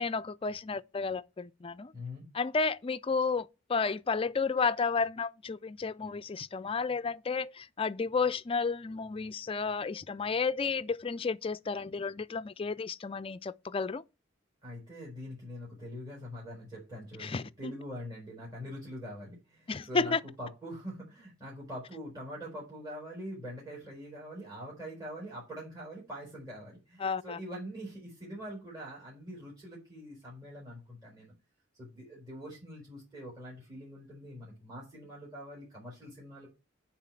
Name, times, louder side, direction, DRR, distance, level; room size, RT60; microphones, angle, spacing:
voice 1, 0.0-1.9 2.3-14.0 17.2-17.7 19.7-20.2 27.0-27.4, left 4 dB, 30° left, 0.4 m, -32 dB
voice 2, 1.9-2.2 14.6-31.3 31.7-36.5, equal, 20° right, 4.3 m, -44 dB
9.8 x 3.9 x 7.4 m
head